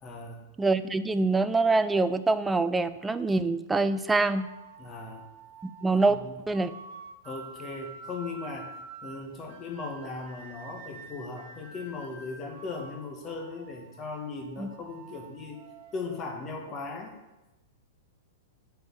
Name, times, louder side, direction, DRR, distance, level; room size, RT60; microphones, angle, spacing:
voice 1, 0.0-0.5 4.8-5.3 6.1-6.4 7.2-15.6 15.9-17.1, left 3 dB, 30° left, 2 dB, 1.6 m, -38 dB
voice 2, 0.6-4.5 5.6-6.2 6.5-6.7 14.6-14.7, right 3 dB, 10° right, 12 dB, 0.5 m, -25 dB
sound 1, 4.2-17.0, right 4 dB, 55° right, 1.3 m, -48 dB
8.6 x 4.8 x 7.4 m, 1.0 s
hypercardioid pair, 105°, 0 cm